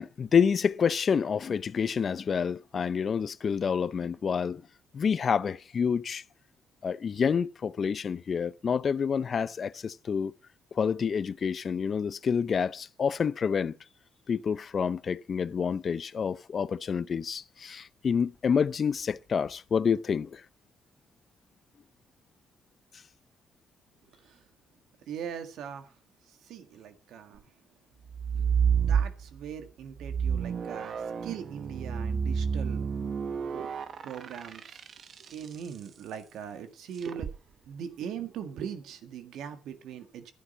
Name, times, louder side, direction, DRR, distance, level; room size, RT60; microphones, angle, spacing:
voice 1, 0.0-4.6 4.9-6.2 6.8-10.3 10.7-13.8 14.3-20.4, left 6 dB, 50° left, 0.6 m, -28 dB
voice 2, 25.1-25.9 26.5-27.4 28.8-31.0 31.2-32.9 33.3-33.8 34.0-34.8 35.2-37.3 37.7-40.3, right 8 dB, 80° right, 1.7 m, -40 dB
sound 1, 28.1-29.5 30.0-35.5 37.0-37.3, right 7 dB, 55° right, 0.9 m, -29 dB
12.5 x 10.0 x 5.4 m
supercardioid pair, 70°, 0 cm